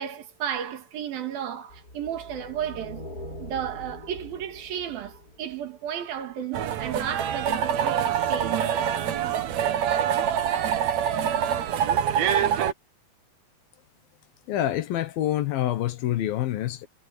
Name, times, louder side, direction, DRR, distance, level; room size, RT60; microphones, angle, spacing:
voice 1, 0.0-3.1 3.4-8.8, right 9 dB, 75° right, 3.8 m, -33 dB
sound 1, 1.7-6.1, left 1 dB, 25° left, 7.8 m, -42 dB
sound 2, 6.5-12.7, right 9 dB, 60° right, 2.1 m, -25 dB
voice 2, 14.5-16.9, left 12 dB, 75° left, 3.0 m, -26 dB
omnidirectional pair, 4.3 m